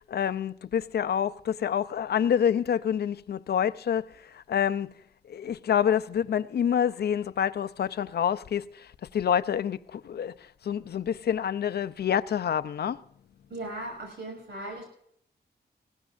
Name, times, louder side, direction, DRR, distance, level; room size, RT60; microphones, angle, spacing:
voice 1, 0.0-4.9 5.3-13.0, left 8 dB, 70° left, 0.6 m, -27 dB
voice 2, 13.5-14.9, right 1 dB, 80° right, 6.4 m, -37 dB
20.5 x 17.0 x 2.5 m
wide cardioid pair, 120°, 17 cm